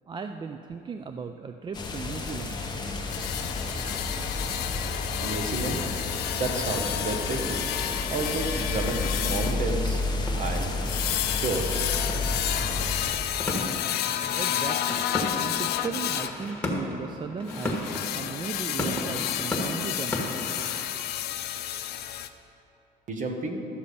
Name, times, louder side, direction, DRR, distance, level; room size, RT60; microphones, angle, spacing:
voice 1, 0.1-2.6 14.4-15.1 15.4-20.4, right 5 dB, 25° right, 7 dB, 0.4 m, -37 dB
sound 1, 1.7-13.1, left 2 dB, 25° left, 1.1 m, -31 dB
sound 2, 3.1-16.4 17.5-22.3, left 12 dB, 75° left, 0.5 m, -31 dB
sound 3, 4.6-20.9, left 1 dB, 10° left, 1.7 m, -37 dB
voice 2, 5.2-5.9 6.3-7.6 8.1-10.0 10.4-10.7 11.2-11.9 23.1-23.6, right 3 dB, 50° right, 3 dB, 1.4 m, -31 dB
12.5 x 6.8 x 5.3 m, 2.7 s
cardioid pair, 110°, 17 cm